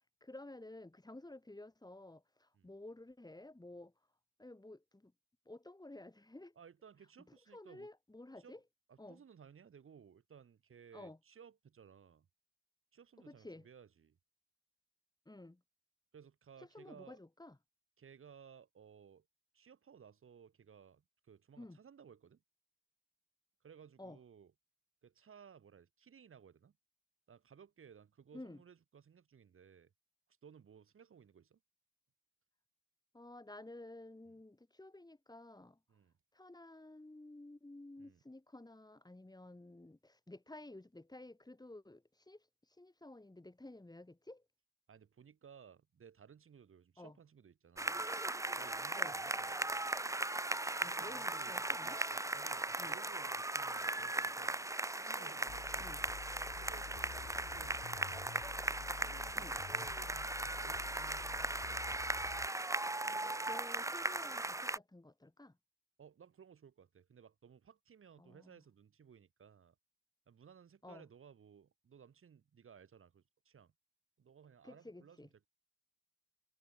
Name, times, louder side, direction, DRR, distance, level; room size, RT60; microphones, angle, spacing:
voice 1, 0.2-3.9 4.4-5.1 5.5-6.5 7.5-8.6 9.0-9.2 10.9-11.2 13.2-13.7 15.3-15.6 16.6-17.6 21.6-21.8 24.0-24.2 28.3-28.6 33.1-35.8 36.3-42.4 42.8-44.4 47.0-47.2 48.9-49.1 50.8-52.0 52.8-53.0 55.0-55.4 55.8-56.0 59.3-59.6 63.0-65.6 68.2-68.6 70.8-71.0 74.6-75.3, left 2 dB, 20° left, 2.5 m, -53 dB
voice 2, 6.6-7.9 8.4-8.6 8.9-12.3 12.9-14.2 16.1-17.2 18.0-19.3 19.5-22.4 23.6-24.5 25.0-26.7 27.3-29.9 30.4-31.6 35.9-36.1 38.0-38.2 44.9-48.1 48.5-49.7 50.8-54.6 55.1-56.2 56.5-58.4 58.8-61.6 66.0-69.8 70.3-73.7 74.2-75.5, right 7 dB, 80° right, 5.8 m, -59 dB
sound 1, 47.8-64.8, right 2 dB, 15° right, 0.8 m, -38 dB
sound 2, 55.5-62.5, left 7 dB, 65° left, 0.8 m, -50 dB
cardioid pair, 50°, 21 cm